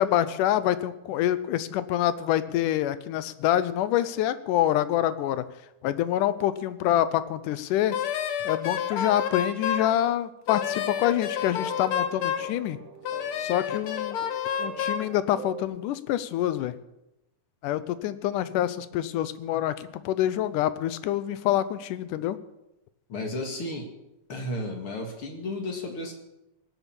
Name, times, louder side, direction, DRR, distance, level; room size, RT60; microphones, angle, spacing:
voice 1, 0.0-5.5 5.8-8.0 8.4-12.8 13.4-14.3 14.6-16.7 17.6-22.4, left 12 dB, 80° left, 14 dB, 2.2 m, -26 dB
Wind instrument woodwind instrument, 7.9-9.9 10.5-12.5 13.0-15.1, left 9 dB, 65° left, 1.4 m, -29 dB
sound 1, 10.5-15.6, right 6 dB, 75° right, 2.9 m, -44 dB
voice 2, 23.1-23.9 24.3-26.1, left 1 dB, 45° left, 3 dB, 2.5 m, -33 dB
18.5 x 8.2 x 7.1 m, 0.92 s
omnidirectional pair, 3.7 m